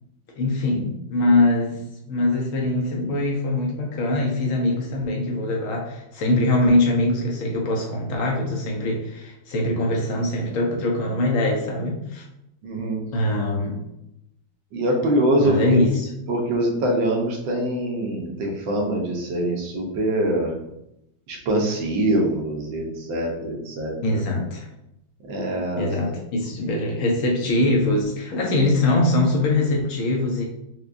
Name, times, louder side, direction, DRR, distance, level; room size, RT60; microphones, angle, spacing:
voice 1, 0.4-1.8 2.1-12.2 13.1-13.8 15.4-16.1 24.0-24.7 25.7-30.4, left 2 dB, 80° left, 0 dB, 0.7 m, -22 dB
voice 2, 12.6-13.0 14.7-15.8 16.3-20.5 21.3-24.2 25.3-25.9, right 1 dB, 80° right, 0 dB, 1.5 m, -24 dB
4.7 x 2.2 x 2.4 m, 0.83 s
omnidirectional pair, 2.1 m